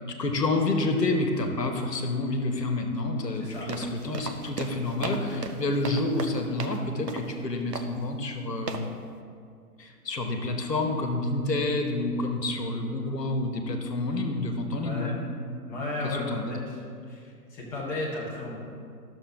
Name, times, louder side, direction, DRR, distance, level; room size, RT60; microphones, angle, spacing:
voice 1, 0.2-8.9 9.8-15.1 16.0-16.6, left 2 dB, 80° left, 4 dB, 1.2 m, -28 dB
sound 1, 3.4-6.8 7.1-7.3 7.7-8.0 8.7-8.9, right 5 dB, 75° right, 0.9 m, -36 dB
voice 2, 14.8-15.2 15.7-16.8 17.1-18.6, left 2 dB, 5° left, -7 dB, 0.6 m, -34 dB
12.0 x 6.9 x 3.6 m, 2.3 s
figure-of-eight pair, 130°, 49 cm